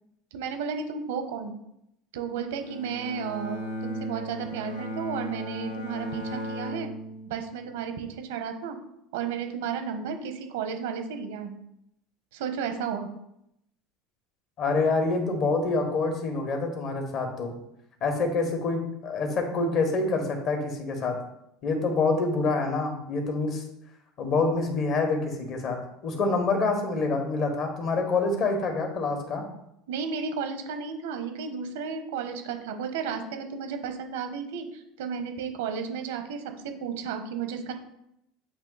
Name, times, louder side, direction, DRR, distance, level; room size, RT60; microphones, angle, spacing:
voice 1, 0.3-1.5 2.1-6.9 7.3-8.8 9.1-11.6 12.3-13.1 29.9-37.7, right 6 dB, 85° right, 6 dB, 0.9 m, -33 dB
Bowed string instrument, 2.6-7.8, equal, 90° left, 0.9 m, -36 dB
voice 2, 14.6-17.5 18.0-21.2 21.6-23.6 24.2-29.4, left 3 dB, 50° left, 4 dB, 1.5 m, -26 dB
8.3 x 2.8 x 4.0 m, 0.81 s
supercardioid pair, 105°, 0 cm